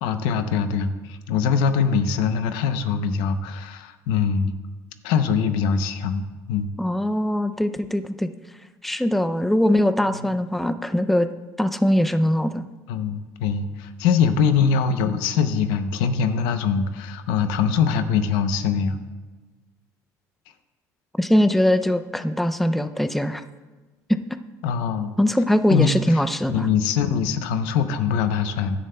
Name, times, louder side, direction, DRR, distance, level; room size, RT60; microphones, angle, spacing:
voice 1, 0.0-4.5 5.0-6.7 12.9-19.0 24.6-25.1 25.7-26.2 26.5-28.8, left 6 dB, 90° left, 10 dB, 0.7 m, -23 dB
voice 2, 6.8-8.3 8.8-11.3 11.6-12.6 21.2-23.4 25.2-26.7, left 1 dB, ahead, 10 dB, 0.4 m, -21 dB
16.0 x 11.0 x 2.2 m, 1.2 s
cardioid pair, 120°, 7 cm